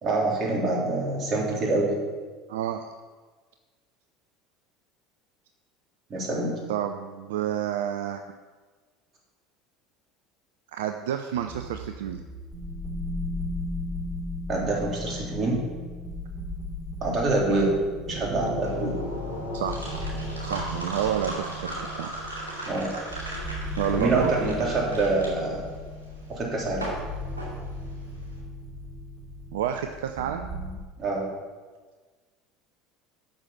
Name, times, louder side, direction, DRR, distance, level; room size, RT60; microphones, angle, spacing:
voice 1, 0.0-1.9 6.1-6.5 14.5-15.6 17.0-17.8 18.1-18.9 22.7-22.9 23.9-25.7 26.3-26.9 31.0-31.3, right 2 dB, 40° right, -2 dB, 3.5 m, -26 dB
voice 2, 2.5-2.9 6.7-8.2 10.7-12.2 17.5-17.7 19.5-19.8 20.4-22.1 23.8-24.3 29.5-30.7, right 10 dB, 70° right, 6 dB, 0.5 m, -29 dB
sound 1, 11.3-30.8, left 1 dB, 5° right, 3.8 m, -37 dB
sound 2, 18.0-21.8, left 2 dB, 80° left, 2.2 m, -36 dB
sound 3, 18.4-28.3, right 1 dB, 90° right, 2.5 m, -38 dB
8.9 x 6.6 x 7.3 m, 1.4 s
figure-of-eight pair, 70°, 0 cm